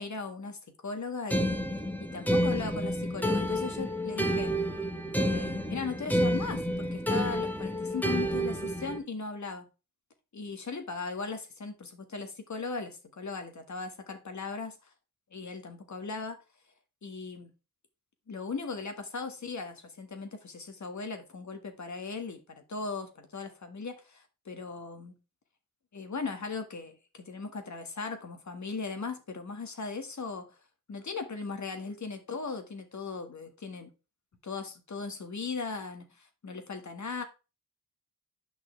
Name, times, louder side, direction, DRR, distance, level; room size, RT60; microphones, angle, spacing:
voice 1, 0.0-1.6 2.0-4.5 5.2-9.7 10.3-14.9 15.3-16.4 17.0-17.5 18.3-25.2 25.9-30.6 30.9-33.9 34.4-37.2, left 4 dB, 50° left, 1.7 m, -38 dB
sound 1, 1.3-9.0, equal, 5° left, 1.3 m, -29 dB
8.5 x 5.8 x 3.3 m
cardioid pair, 70°, 37 cm